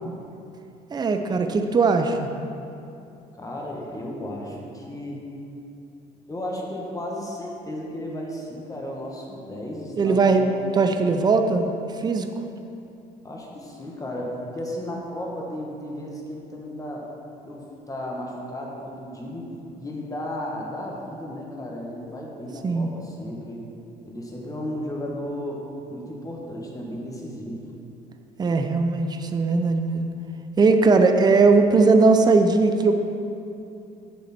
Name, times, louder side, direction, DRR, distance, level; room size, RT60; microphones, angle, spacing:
voice 1, 0.9-2.3 10.0-10.4 10.7-11.7 12.0-12.3 22.6-22.9 28.4-30.1 30.6-32.9, right 3 dB, 25° right, 6 dB, 0.6 m, -19 dB
voice 2, 3.4-5.2 6.3-10.5 13.2-17.1 17.4-23.6 24.1-25.6 25.9-27.7, left 1 dB, 20° left, -1 dB, 1.7 m, -34 dB
7.3 x 7.2 x 6.0 m, 2.7 s
cardioid pair, 110°, 17 cm